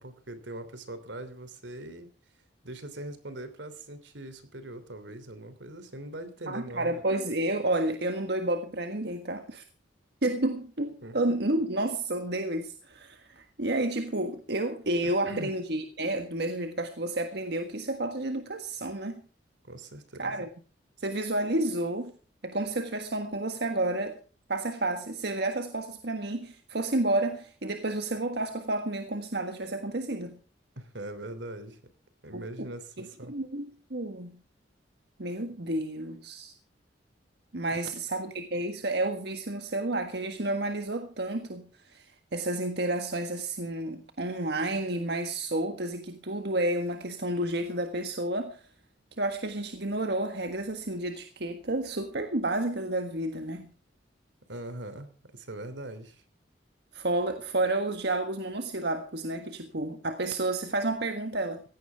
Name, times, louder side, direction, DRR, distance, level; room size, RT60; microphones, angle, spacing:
voice 1, 0.0-2.1 2.6-7.0 11.0-11.2 15.0-15.5 19.6-20.5 30.8-31.8 32.2-33.3 37.7-37.9 54.5-56.2, right 1 dB, 80° right, 3.1 m, -41 dB
voice 2, 6.5-9.6 10.2-19.2 20.2-20.5 21.0-22.1 22.4-24.2 24.5-30.4 32.3-32.7 33.0-34.4 35.2-36.5 37.5-48.6 49.2-53.7 56.9-61.6, right 2 dB, 65° right, 1.6 m, -31 dB
17.0 x 15.5 x 3.6 m
head